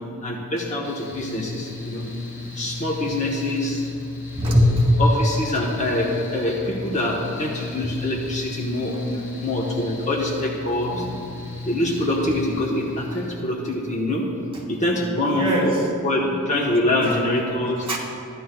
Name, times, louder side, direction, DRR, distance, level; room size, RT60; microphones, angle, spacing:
voice 1, 0.2-2.1 2.6-3.8 5.0-11.0 11.7-14.3 14.7-15.7 16.0-17.8, left 1 dB, 35° left, -2 dB, 1.1 m, -24 dB
Mechanical fan, 0.8-13.4, left 3 dB, 55° left, 1.6 m, -35 dB
voice 2, 4.4-4.9 7.8-7.9 10.9-11.2 15.3-15.8 17.0-17.2 17.8-18.0, equal, 25° right, -4 dB, 2.0 m, -21 dB
14.0 x 11.0 x 2.3 m, 2.5 s
head